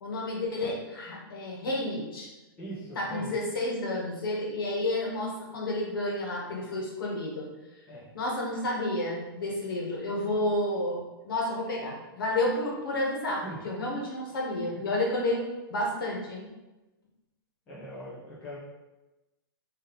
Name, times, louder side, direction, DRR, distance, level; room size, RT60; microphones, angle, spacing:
voice 1, 0.0-2.3 2.9-7.5 8.1-11.0 11.2-15.4 15.7-16.5, left 1 dB, 65° left, -3 dB, 1.2 m, -30 dB
voice 2, 2.6-3.4 7.9-8.1 13.4-13.6 14.7-14.8 17.7-18.6, right 1 dB, 10° left, -10 dB, 0.6 m, -41 dB
3.5 x 2.7 x 3.7 m, 1.1 s
hypercardioid pair, 180°, 13 cm